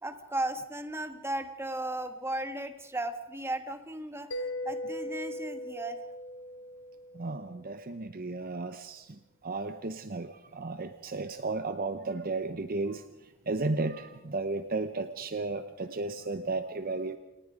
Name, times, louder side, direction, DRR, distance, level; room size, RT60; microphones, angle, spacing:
voice 1, 0.0-6.0, right 1 dB, 10° right, 8 dB, 1.4 m, -35 dB
Mallet percussion, 4.3-7.8, left 1 dB, 55° left, 1.2 m, -39 dB
voice 2, 7.1-13.0 13.5-17.2, right 3 dB, 40° right, 10 dB, 0.8 m, -34 dB
28.5 x 19.0 x 5.1 m, 0.97 s
head